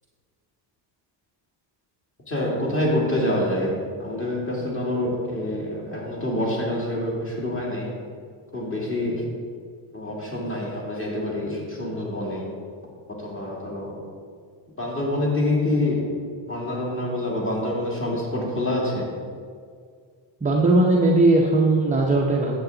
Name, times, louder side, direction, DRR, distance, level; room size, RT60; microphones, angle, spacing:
voice 1, 2.3-3.7 4.0-7.9 8.5-9.2 9.9-12.5 13.2-13.9 14.8-16.0 16.5-19.1, left 1 dB, 25° left, -4 dB, 2.5 m, -26 dB
voice 2, 20.4-22.6, right 2 dB, 15° right, -3 dB, 0.7 m, -18 dB
9.6 x 7.4 x 3.9 m, 2.1 s
cardioid pair, 135°, 50 cm